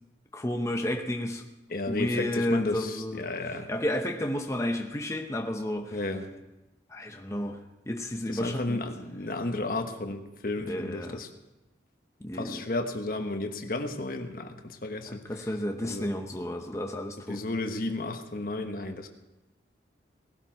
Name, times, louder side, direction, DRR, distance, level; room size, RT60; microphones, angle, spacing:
voice 1, 0.3-1.5 1.9-6.0 6.9-8.8 10.7-11.2 12.2-12.6 15.1-17.4, left 1 dB, 15° left, 3 dB, 0.8 m, -32 dB
voice 2, 1.7-3.7 5.9-6.3 8.3-11.3 12.3-15.4 15.8-16.1 17.3-19.1, left 2 dB, 50° left, 5 dB, 1.3 m, -33 dB
18.5 x 12.0 x 4.6 m, 1.0 s
head